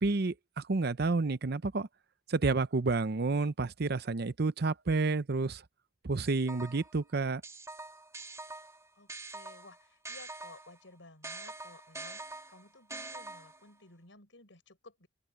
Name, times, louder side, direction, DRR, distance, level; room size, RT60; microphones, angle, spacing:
voice 1, 0.0-1.9 2.3-5.6 6.0-7.4, right 3 dB, 60° right, 0.7 m, -30 dB
sound 1, 6.2-7.0 7.4-10.8 11.2-13.7, right 2 dB, 15° right, 2.9 m, -45 dB
voice 2, 8.9-12.2 12.5-15.1, left 2 dB, 85° left, 5.4 m, -55 dB
open air
head